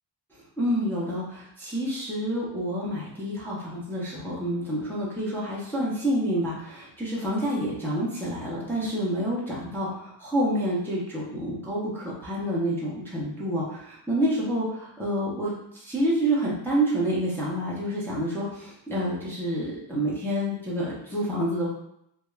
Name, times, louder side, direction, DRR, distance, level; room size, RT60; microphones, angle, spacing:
voice 1, 0.6-14.7 15.0-21.7, equal, 5° left, -7 dB, 0.3 m, -28 dB
2.2 x 2.1 x 3.0 m, 0.76 s
cardioid pair, 175°, 49 cm